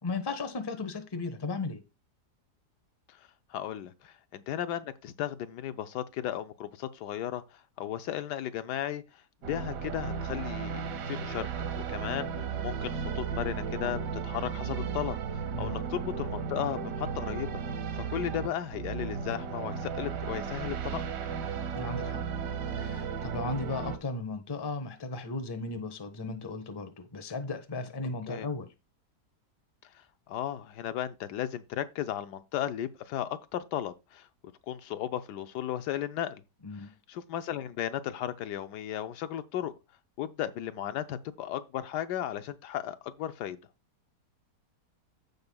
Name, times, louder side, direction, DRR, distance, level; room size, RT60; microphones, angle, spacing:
voice 1, 0.0-1.8 15.5-15.8 21.7-22.2 22.8-28.7 36.6-36.9, left 3 dB, 20° left, 0.7 m, -36 dB
voice 2, 3.5-9.2 9.5-17.5 17.9-21.0 28.3-28.5 30.3-34.3 34.7-36.4 37.1-39.7 40.2-43.6, left 11 dB, 80° left, 1.2 m, -35 dB
sound 1, 9.4-24.0, right 6 dB, 90° right, 1.5 m, -35 dB
15.0 x 5.3 x 2.3 m
omnidirectional pair, 1.8 m